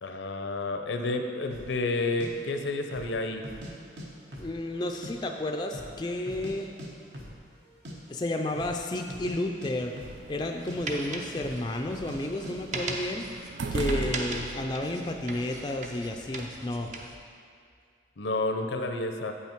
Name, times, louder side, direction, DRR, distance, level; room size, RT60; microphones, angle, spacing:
voice 1, 0.0-3.4 18.2-19.3, left 2 dB, 80° left, 5 dB, 0.6 m, -30 dB
sound 1, 1.5-1.7 2.2-2.3 2.8-3.1 3.4-4.1 4.3-5.1 5.4-5.5 5.7-6.5 6.8-6.9 7.1-7.4 7.7-8.0 8.5-8.8 9.1-10.4 10.7-10.8 11.4-11.6 11.9-12.2 12.4-12.6, equal, 65° right, 1.1 m, -41 dB
voice 2, 4.4-6.7 8.1-10.0 10.3-13.3 13.7-16.9, left 1 dB, 25° left, 3 dB, 0.3 m, -32 dB
sound 2, 9.8-16.5, right 3 dB, 90° right, 0.4 m, -39 dB
sound 3, 10.0-17.2, right 2 dB, 40° right, 0.6 m, -39 dB
8.2 x 5.7 x 4.5 m, 2.3 s
head